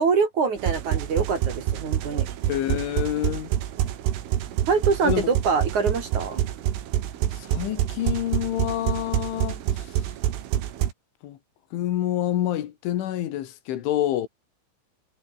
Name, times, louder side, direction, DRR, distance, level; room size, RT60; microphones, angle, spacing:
voice 1, 0.0-2.3 4.7-6.4, right 5 dB, 45° right, 3.9 m, -24 dB
sound 1, 0.6-10.9, right 11 dB, 90° right, 4.8 m, -27 dB
voice 2, 2.5-3.5 5.0-5.3 7.3-9.6 11.2-11.4 11.7-14.3, left 12 dB, 80° left, 4.3 m, -27 dB
omnidirectional pair, 5.5 m